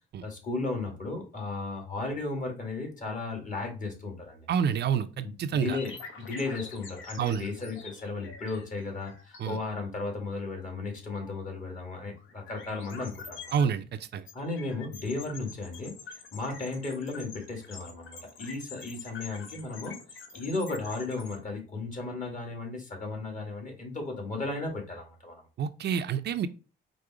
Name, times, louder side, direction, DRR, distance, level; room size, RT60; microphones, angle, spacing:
voice 1, 0.2-4.5 5.2-13.5 14.3-15.9 16.3-20.0 20.3-25.4, left 3 dB, 40° left, 1.9 m, -35 dB
voice 2, 4.5-5.8 7.2-7.4 9.4-9.6 13.5-14.2 25.6-26.5, right 7 dB, 60° right, 0.5 m, -28 dB
sound 1, 5.7-9.8 10.3-10.4 11.0-11.4 12.2-13.7 14.3-21.4, left 5 dB, 75° left, 1.0 m, -46 dB
5.0 x 2.1 x 4.7 m
cardioid pair, 90°, 20 cm